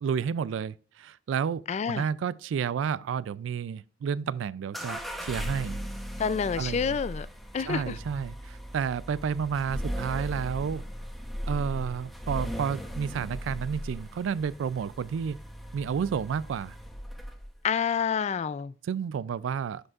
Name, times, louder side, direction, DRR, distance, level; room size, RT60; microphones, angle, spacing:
voice 1, 0.0-5.8 6.6-7.0 7.6-10.8 11.4-15.4 15.7-16.8 18.8-19.9, right 7 dB, 85° right, 0.3 m, -31 dB
voice 2, 1.7-2.1 6.2-7.3 7.5-8.0 17.6-18.7, left 6 dB, 35° left, 0.3 m, -28 dB
sound 1, 4.7-17.6, equal, ahead, 0.7 m, -38 dB
11.0 x 5.1 x 2.4 m
head